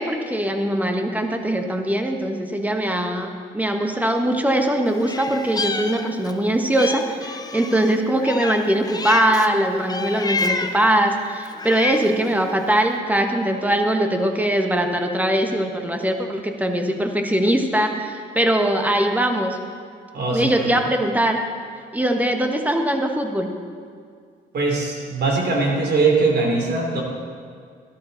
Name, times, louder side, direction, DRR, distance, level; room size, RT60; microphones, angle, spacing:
voice 1, 0.0-19.6 20.3-21.4 21.9-23.5, right 1 dB, 10° right, 4 dB, 1.2 m, -21 dB
Meow, 5.0-6.4 6.8-9.5 9.9-10.9 11.4-12.3, left 3 dB, 20° left, 0.6 m, -29 dB
voice 2, 20.1-20.7 24.5-27.0, right 3 dB, 55° right, 0 dB, 2.8 m, -21 dB
12.5 x 12.0 x 4.0 m, 2.1 s
cardioid pair, 90°, 20 cm